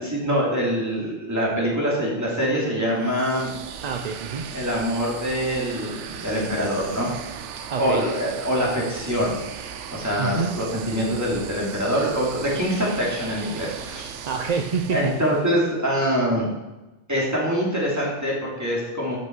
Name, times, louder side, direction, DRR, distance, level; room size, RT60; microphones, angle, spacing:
voice 1, 0.0-3.5 4.5-7.1 7.8-14.1 14.9-16.5 17.1-19.2, equal, 15° right, -5 dB, 2.8 m, -24 dB
sound 1, 3.0-15.7, right 8 dB, 80° right, 1.0 m, -37 dB
voice 2, 3.8-4.4 7.7-8.0 10.2-10.5 14.3-15.0, right 5 dB, 45° right, 4 dB, 0.6 m, -26 dB
12.0 x 5.8 x 4.6 m, 1.0 s
omnidirectional pair, 1.2 m